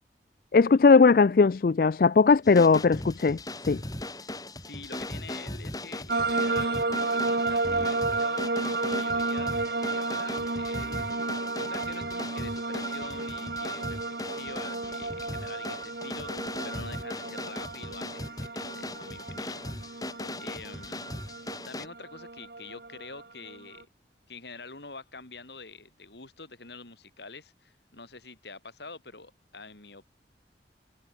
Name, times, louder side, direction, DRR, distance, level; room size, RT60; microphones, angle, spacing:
voice 1, 0.5-3.4 3.7-3.8, left 4 dB, 55° left, 0.4 m, -19 dB
sound 1, 2.4-21.9, left 1 dB, 20° left, 5.3 m, -39 dB
voice 2, 4.6-6.8 7.1-8.4 8.7-11.0 11.5-21.2 21.7-23.9 24.3-30.0, left 4 dB, 75° left, 3.7 m, -46 dB
sound 2, 6.1-23.8, right 3 dB, 60° right, 1.6 m, -32 dB
head